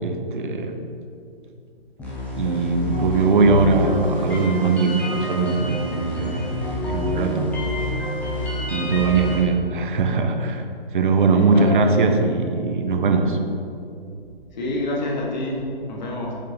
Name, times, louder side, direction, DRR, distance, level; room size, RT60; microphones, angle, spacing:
voice 1, 0.0-0.8 2.4-5.8 6.1-6.6 6.9-7.5 8.7-10.6 10.9-13.4, right 4 dB, 55° right, 6 dB, 0.7 m, -20 dB
sound 1, 2.0-9.4, left 1 dB, 5° left, 0.7 m, -27 dB
voice 2, 11.3-12.0 14.5-16.3, left 1 dB, 45° left, -2 dB, 1.5 m, -27 dB
6.8 x 6.5 x 2.8 m, 2.6 s
figure-of-eight pair, 135°, 30 cm